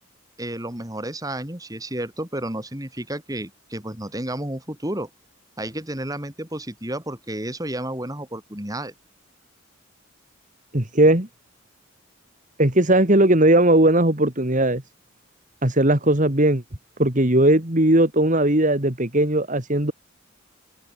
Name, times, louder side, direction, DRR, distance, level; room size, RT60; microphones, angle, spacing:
voice 1, 0.4-5.1 5.6-8.9, right 1 dB, 15° right, 4.0 m, -31 dB
voice 2, 10.7-11.3 12.6-14.8 15.6-16.6 17.0-19.9, right 1 dB, 40° right, 2.7 m, -18 dB
open air
head